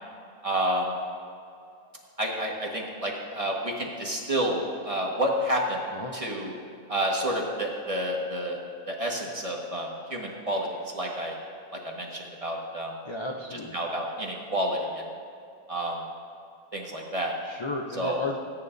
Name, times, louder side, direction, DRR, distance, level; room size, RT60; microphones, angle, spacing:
voice 1, 0.4-0.9 2.2-5.8 6.1-6.5 6.9-8.6 8.9-10.7 10.9-11.3 11.8-12.9 13.7-15.0 15.7-16.0 16.7-17.3 18.0-18.2, equal, 25° right, -1 dB, 1.6 m, -29 dB
voice 2, 13.0-13.8 17.4-18.4, left 2 dB, 35° left, 0 dB, 0.4 m, -33 dB
20.5 x 10.0 x 2.7 m, 2.5 s
omnidirectional pair, 1.5 m